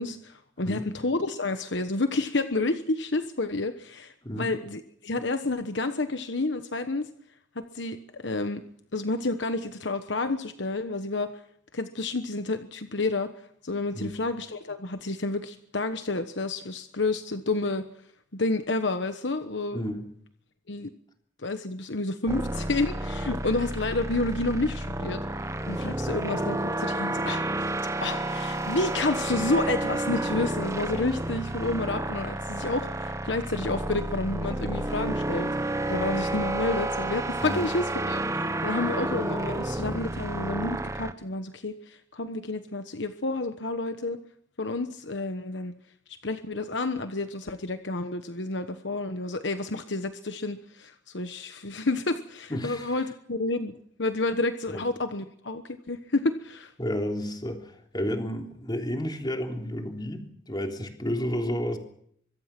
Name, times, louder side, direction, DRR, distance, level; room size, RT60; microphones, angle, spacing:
voice 1, 0.0-7.1 7.5-8.6 8.9-11.3 11.7-13.3 13.6-17.9 18.3-19.8 20.7-20.9 21.4-44.2 44.6-45.7 46.2-56.7, left 2 dB, 65° left, 8 dB, 1.2 m, -30 dB
voice 2, 19.7-20.0 37.4-37.7 52.5-52.9 54.7-54.8 56.8-61.8, equal, 25° left, 3 dB, 3.4 m, -31 dB
sound 1, 22.3-41.1, right 1 dB, 15° right, 1.1 m, -30 dB
25.0 x 22.5 x 6.1 m, 0.68 s
head